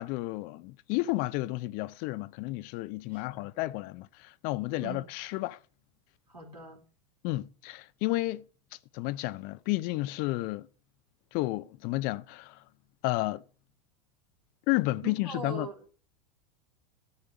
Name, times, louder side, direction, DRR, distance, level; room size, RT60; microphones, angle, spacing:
voice 1, 0.0-5.6 7.2-8.4 8.9-10.7 11.3-12.6 13.0-13.4 14.7-15.7, left 19 dB, 45° left, 0.6 m, -31 dB
voice 2, 3.1-3.4 4.8-5.1 6.3-6.8 15.0-15.7, right 3 dB, 90° right, 3.7 m, -41 dB
12.5 x 6.6 x 7.8 m
figure-of-eight pair, 90°, 20 cm